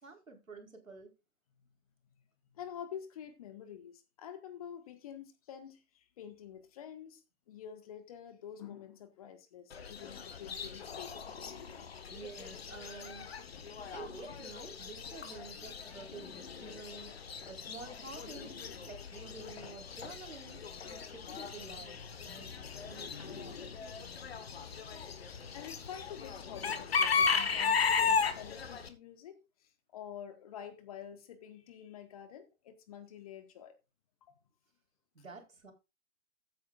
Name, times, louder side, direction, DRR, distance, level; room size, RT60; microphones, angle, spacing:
voice 1, 0.0-1.1 12.1-13.3 13.9-17.2 17.5-23.7 35.1-35.7, right 4 dB, 70° right, 4.5 m, -50 dB
voice 2, 2.5-11.3 24.6-24.9 25.5-33.7 34.2-34.3, left 9 dB, 25° left, 1.4 m, -48 dB
Chicken rooster / Bird, 9.7-28.9, left 5 dB, 45° left, 1.6 m, -36 dB
15.0 x 8.6 x 2.5 m
figure-of-eight pair, 135°, 42 cm